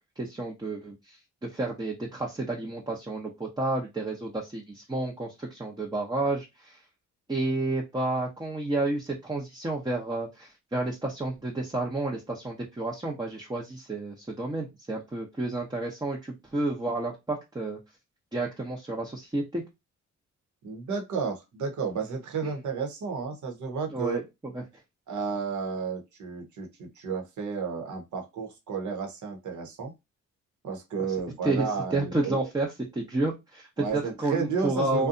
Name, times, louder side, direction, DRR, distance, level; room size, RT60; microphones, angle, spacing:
voice 1, 0.2-6.8 7.3-17.8 18.3-19.6 22.4-22.5 23.9-24.6 31.0-31.1 31.4-35.1, right 2 dB, 15° right, -1 dB, 0.7 m, -31 dB
voice 2, 20.6-24.2 25.1-29.9 30.6-32.5 33.8-35.1, right 5 dB, 80° right, 4 dB, 0.9 m, -32 dB
2.6 x 2.2 x 2.5 m, 0.22 s
cardioid pair, 75°, 29 cm